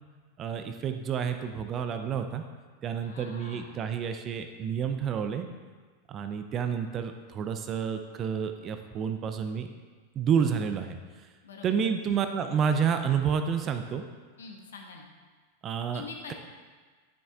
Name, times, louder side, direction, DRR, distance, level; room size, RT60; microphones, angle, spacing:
voice 1, 0.4-2.4 2.8-5.5 6.1-9.7 10.2-11.0 11.6-14.0 15.6-16.0, right 7 dB, 30° right, 7 dB, 0.6 m, -29 dB
voice 2, 3.0-3.9 11.4-11.8 14.4-15.1 15.9-16.3, left 5 dB, 65° left, 2 dB, 1.2 m, -45 dB
10.5 x 9.0 x 2.4 m, 1.4 s
figure-of-eight pair, 90°, 0 cm